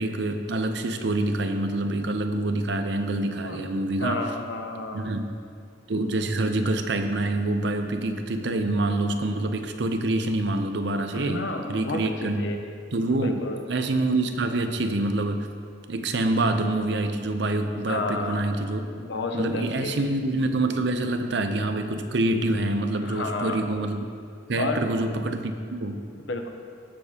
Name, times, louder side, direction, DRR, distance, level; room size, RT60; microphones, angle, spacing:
voice 1, 0.0-4.2 4.9-5.3 5.9-12.5 12.9-13.4 13.7-15.5 15.9-18.9 19.3-24.1 24.5-26.0, right 2 dB, 60° right, 7 dB, 0.6 m, -26 dB
voice 2, 4.0-5.2 11.1-12.6 13.2-13.6 17.8-18.5 19.0-20.0 23.0-23.6 24.6-24.8 26.1-26.5, left 3 dB, 65° left, 4 dB, 0.8 m, -31 dB
16.0 x 6.7 x 2.9 m, 2.2 s
head